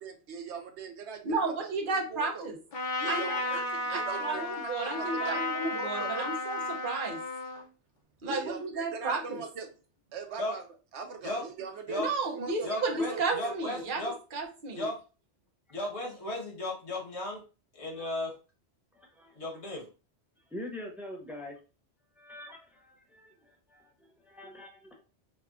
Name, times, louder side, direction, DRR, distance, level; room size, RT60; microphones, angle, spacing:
voice 1, 0.0-1.7 2.1-2.5 3.0-4.5 4.8-5.4 5.7-6.3 8.2-9.7 10.1-10.6 10.9-13.5, right 5 dB, 80° right, 5 dB, 1.0 m, -41 dB
voice 2, 1.2-2.6 3.1-3.6 3.9-7.2 8.2-9.4 12.0-14.0 14.3-14.9, right 3 dB, 50° right, 2 dB, 0.9 m, -33 dB
Trumpet, 2.7-7.7, left 2 dB, 50° left, 0.8 m, -33 dB
voice 3, 12.6-14.1 14.7-15.0 15.7-17.4 17.7-18.3 19.3-19.9, left 1 dB, 75° left, -1 dB, 1.6 m, -35 dB
voice 4, 18.9-19.4 20.5-21.6 22.2-25.0, left 1 dB, ahead, 1 dB, 0.4 m, -45 dB
4.9 x 2.3 x 2.4 m, 0.34 s
omnidirectional pair, 1.2 m